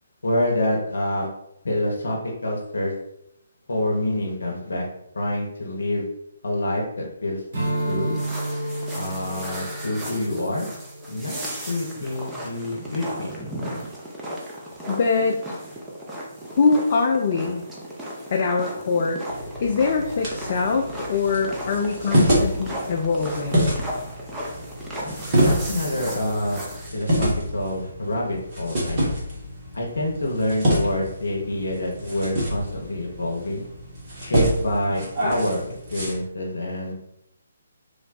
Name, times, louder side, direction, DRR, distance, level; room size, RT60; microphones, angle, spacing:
voice 1, 0.2-1.3 1.6-2.9 3.7-4.9 5.1-6.1 6.4-7.4 7.8-8.2 8.9-10.7 11.1-13.3 25.3-26.6 26.9-29.0 29.7-33.6 34.2-35.7 35.9-36.9, left 1 dB, 65° left, -1 dB, 0.7 m, -27 dB
sound 1, 7.5-26.9, right 1 dB, 10° right, 0.6 m, -36 dB
Strum, 7.5-12.2, right 1 dB, 60° right, 1.0 m, -31 dB
voice 2, 14.9-15.4 16.5-17.6 18.3-19.2 19.6-23.7, left 4 dB, 40° left, 2 dB, 0.4 m, -23 dB
sound 2, 19.3-36.1, equal, 30° right, 1.3 m, -27 dB
3.2 x 2.1 x 3.9 m, 0.81 s
figure-of-eight pair, 135°, 0 cm